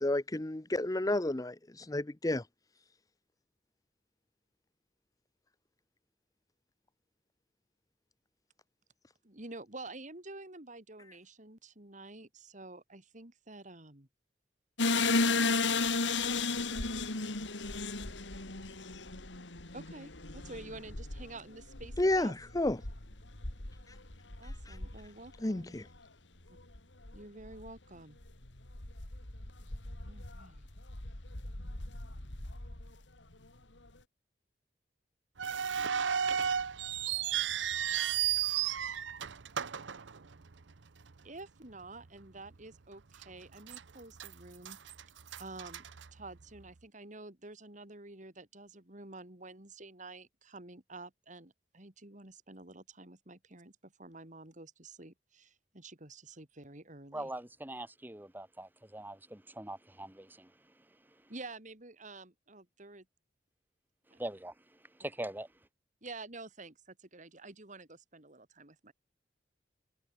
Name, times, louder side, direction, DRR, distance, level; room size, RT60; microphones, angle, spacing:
voice 1, 0.0-2.4 22.0-22.8 24.7-24.8 25.4-25.8, left 1 dB, 20° left, 0.8 m, -31 dB
voice 2, 9.2-14.1 15.0-15.1 19.7-22.3 24.4-25.8 27.1-28.2 30.0-30.7 41.2-44.8 45.4-45.8 46.1-57.3 61.3-63.0 64.1-64.2 66.0-68.9, right 2 dB, 45° right, 3.2 m, -49 dB
sound 1, 14.8-25.6 26.0-26.1 26.6-26.8 27.0-27.7 28.2-32.9, left 3 dB, 80° left, 2.9 m, -35 dB
sound 2, 35.4-40.7 41.0-41.1 41.8-42.1 42.5-42.6 43.2-43.8 44.2-46.6, right 9 dB, 85° right, 0.8 m, -34 dB
voice 3, 57.1-60.5 64.2-64.5 65.0-65.5, right 1 dB, 10° right, 2.1 m, -42 dB
head